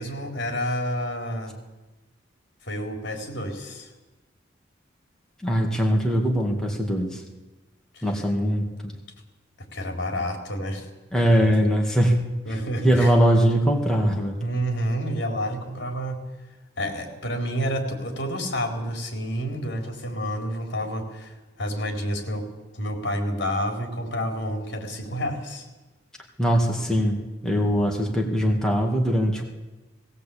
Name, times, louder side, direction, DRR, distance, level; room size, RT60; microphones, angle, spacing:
voice 1, 0.0-1.5 2.6-3.9 7.9-8.1 9.7-10.9 11.4-11.5 12.5-13.1 14.4-16.2 16.8-22.5 22.7-25.7, equal, 65° left, 4 dB, 4.1 m, -29 dB
voice 2, 5.4-7.2 8.0-8.9 11.1-12.2 12.8-14.4 26.4-29.4, equal, 5° left, -1 dB, 2.3 m, -21 dB
19.0 x 18.0 x 8.6 m, 1.1 s
head